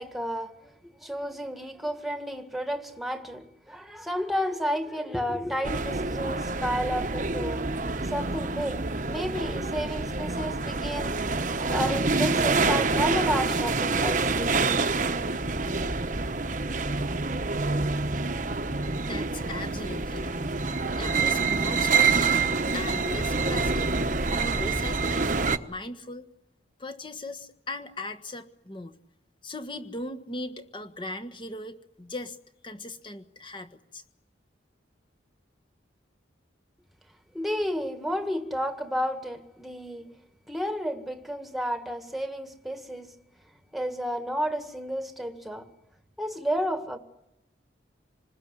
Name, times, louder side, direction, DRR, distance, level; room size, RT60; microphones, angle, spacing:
voice 1, 0.0-7.7 8.0-11.2 11.5-14.9 37.3-40.1 40.5-43.1 43.7-45.7 46.2-47.0, equal, ahead, 1.8 m, -32 dB
sound 1, 5.6-25.6, right 4 dB, 40° right, 1.1 m, -27 dB
voice 2, 19.1-22.3 22.7-23.9 24.3-25.3 25.7-26.3 26.8-29.0 29.4-32.4 32.6-34.0, left 2 dB, 25° left, 1.4 m, -38 dB
27.0 x 20.0 x 9.8 m
head